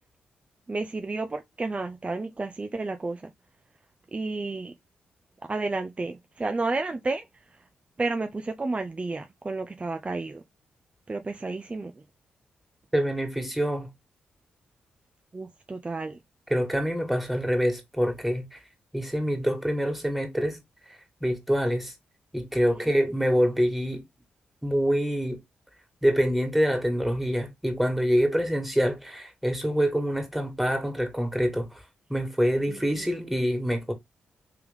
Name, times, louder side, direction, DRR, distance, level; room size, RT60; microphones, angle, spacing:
voice 1, 0.7-3.3 4.1-4.7 5.4-7.3 7.5-7.6 8.0-10.4 11.1-12.0 15.3-16.2 22.8-23.0 32.7-33.3, right 3 dB, 30° right, 0.5 m, -31 dB
voice 2, 12.9-13.9 16.5-18.6 18.9-20.6 21.2-21.9 22.3-24.0 24.6-25.4 26.0-31.8 32.1-33.9, equal, 5° right, 1.9 m, -25 dB
3.4 x 3.1 x 3.5 m
hypercardioid pair, 40°, 4 cm